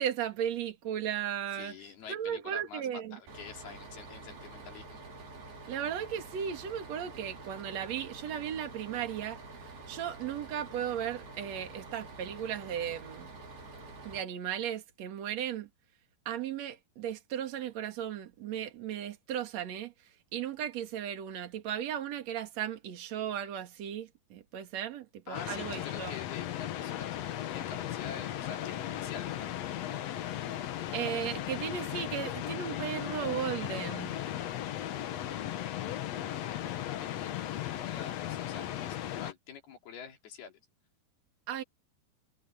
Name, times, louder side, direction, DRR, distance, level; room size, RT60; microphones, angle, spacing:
voice 1, 0.0-1.8 2.1-3.2 5.7-13.3 14.0-15.7 16.3-19.9 20.3-26.1 30.9-34.2 41.5-41.6, right 9 dB, 50° right, 2.9 m, -36 dB
voice 2, 1.5-5.0 25.3-29.5 35.3-35.8 36.1-40.6, left 7 dB, 70° left, 5.1 m, -47 dB
Bus, 3.3-14.2, right 3 dB, 70° right, 7.4 m, -48 dB
sound 1, 25.3-39.3, left 12 dB, 90° left, 1.4 m, -36 dB
omnidirectional pair, 4.6 m